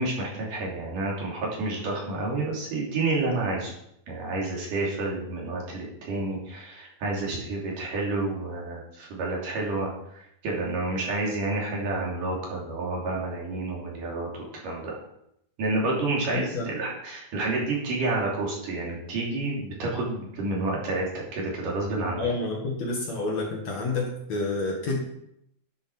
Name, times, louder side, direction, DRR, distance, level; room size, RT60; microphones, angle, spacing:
voice 1, 0.0-3.7 4.1-15.0 15.6-22.3, right 2 dB, 60° right, -3 dB, 4.3 m, -29 dB
voice 2, 22.2-25.0, left 3 dB, 50° left, -1 dB, 2.7 m, -29 dB
10.5 x 8.0 x 6.1 m, 0.77 s
omnidirectional pair, 4.4 m